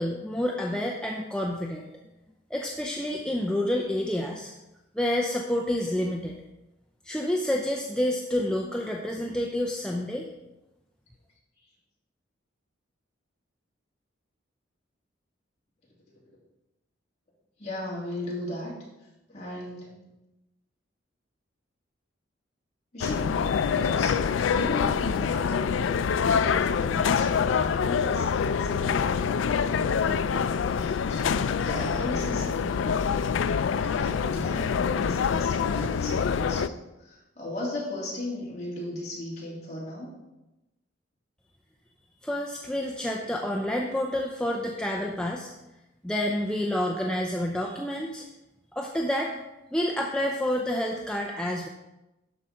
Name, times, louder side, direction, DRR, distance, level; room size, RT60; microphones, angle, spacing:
voice 1, 0.0-1.9 2.5-4.5 4.9-6.4 7.0-10.3 42.2-45.5 46.0-48.3 48.7-49.3 49.7-51.7, left 1 dB, 5° left, 0 dB, 0.5 m, -28 dB
voice 2, 17.6-18.7 19.3-19.9 22.9-33.2 33.8-40.1, left 1 dB, 35° left, -5 dB, 2.8 m, -37 dB
sound 1, 23.0-36.7, left 6 dB, 75° left, 0.4 m, -25 dB
12.0 x 5.2 x 4.2 m, 0.98 s
head